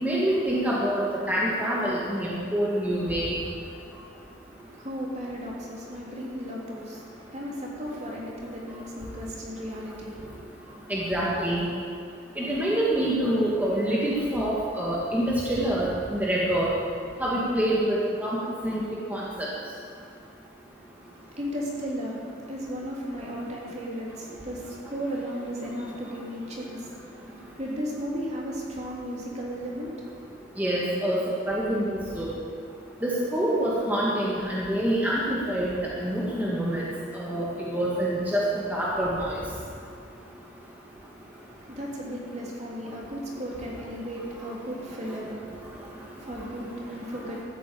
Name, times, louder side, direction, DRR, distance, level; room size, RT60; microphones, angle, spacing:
voice 1, 0.0-3.3 10.9-11.6 12.4-16.7 17.2-18.8 19.1-19.2 30.6-31.2 31.5-32.3 33.0-35.7 36.0-39.4, right 1 dB, 10° right, -6 dB, 1.7 m, -26 dB
voice 2, 4.5-10.4 21.1-30.2 41.2-47.4, equal, 40° right, -3 dB, 3.1 m, -35 dB
13.5 x 9.1 x 8.4 m, 2.4 s
head